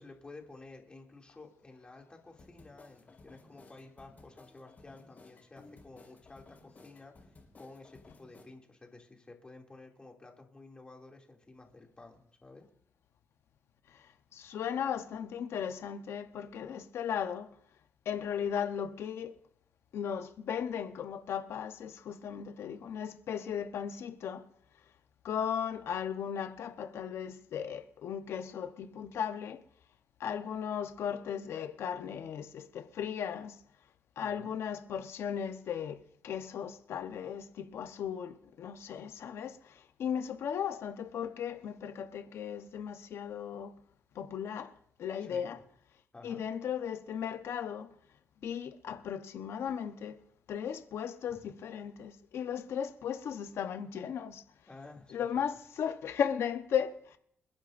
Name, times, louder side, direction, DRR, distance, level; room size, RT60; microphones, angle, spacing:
voice 1, 0.0-12.6 34.2-34.6 45.2-45.5 46.1-46.4 54.7-55.4, left 3 dB, 25° left, 2.6 m, -52 dB
sound 1, 2.4-8.4, left 3 dB, 40° left, 4.7 m, -57 dB
voice 2, 13.9-17.5 18.0-19.4 19.9-24.4 25.2-29.6 30.2-33.6 34.2-43.7 44.1-44.7 45.0-45.6 46.2-47.9 48.4-50.2 50.5-54.4 55.1-57.2, left 8 dB, 75° left, 1.0 m, -36 dB
27.5 x 10.0 x 2.6 m
cardioid pair, 105°, 4 cm